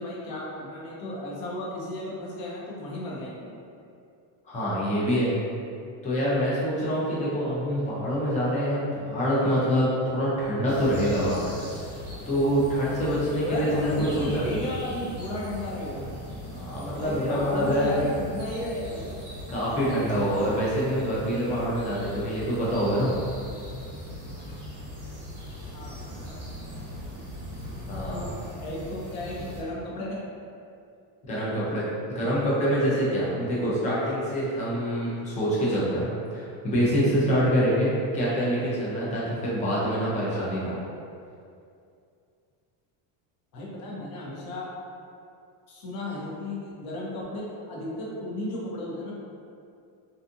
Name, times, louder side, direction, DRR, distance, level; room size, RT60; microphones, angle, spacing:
voice 1, 0.0-3.5 13.4-16.1 16.9-19.2 25.7-26.4 28.1-30.2 43.5-44.7 45.7-49.1, left 1 dB, 50° left, -4 dB, 0.7 m, -34 dB
voice 2, 4.5-5.4 6.0-11.6 12.3-14.5 16.5-18.0 19.5-23.1 27.9-28.3 31.3-36.1 36.3-40.8, equal, 15° left, -8 dB, 0.4 m, -25 dB
sound 1, 10.7-29.6, equal, 25° right, 0.8 m, -39 dB
2.6 x 2.4 x 2.5 m, 2.4 s
cardioid pair, 140°, 49 cm